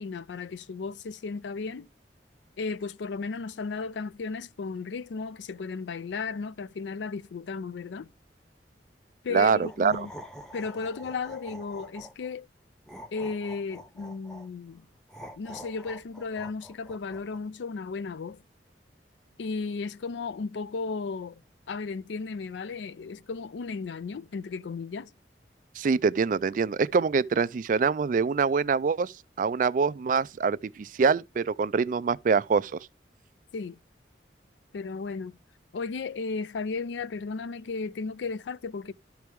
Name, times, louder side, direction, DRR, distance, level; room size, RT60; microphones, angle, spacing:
voice 1, 0.0-1.9 2.6-8.1 9.2-10.1 10.5-12.5 13.1-14.9 15.4-18.4 19.4-21.4 21.7-25.1 33.5-33.8 34.7-35.4 35.7-38.9, left 4 dB, 90° left, 0.4 m, -34 dB
voice 2, 9.3-10.1 25.8-32.8, right 5 dB, 50° right, 0.3 m, -25 dB
sound 1, 9.5-12.3 12.9-14.5 15.1-17.4, equal, 5° left, 0.8 m, -46 dB
12.0 x 4.6 x 3.4 m
head